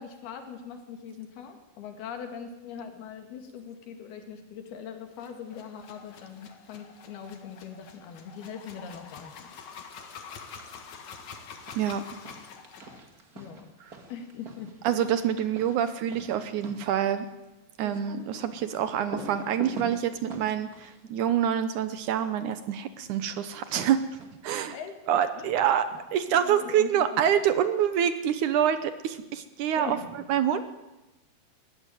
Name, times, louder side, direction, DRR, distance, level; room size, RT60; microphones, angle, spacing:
voice 1, 0.0-9.5 13.4-13.7 14.1-14.7 17.9-18.1 24.7-25.0 25.4-25.6 26.3-27.2 29.8-30.2, left 7 dB, 80° left, 6 dB, 4.1 m, -41 dB
sound 1, 5.1-13.0, left 6 dB, 55° left, 2.8 m, -46 dB
sound 2, 10.3-10.8 11.1-22.1 23.4-24.6, right 3 dB, 35° right, 1.5 m, -45 dB
voice 2, 14.8-17.3 17.8-24.0 24.4-24.8 25.1-25.8 26.1-30.0 30.3-30.6, right 9 dB, 75° right, 11 dB, 1.9 m, -26 dB
20.0 x 14.0 x 9.2 m, 1.0 s
omnidirectional pair, 4.4 m